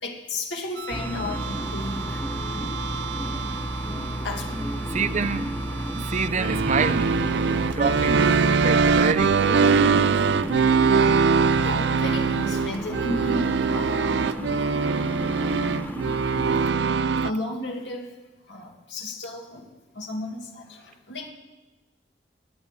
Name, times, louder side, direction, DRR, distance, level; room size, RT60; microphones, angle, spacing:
voice 1, 0.0-2.2 4.2-4.6 11.6-14.2 14.5-14.7 15.4-16.1 17.2-18.2 18.5-19.7 20.0-21.3, left 1 dB, 85° left, 1 dB, 2.1 m, -33 dB
sound 1, 0.8-17.3, right 5 dB, 70° right, 0.4 m, -23 dB
sound 2, 0.9-16.7, equal, 10° left, 1.0 m, -33 dB
voice 2, 4.9-5.5 5.9-7.3 7.8-10.2, right 4 dB, 40° right, 12 dB, 0.7 m, -28 dB
13.5 x 8.6 x 9.6 m, 1.2 s
head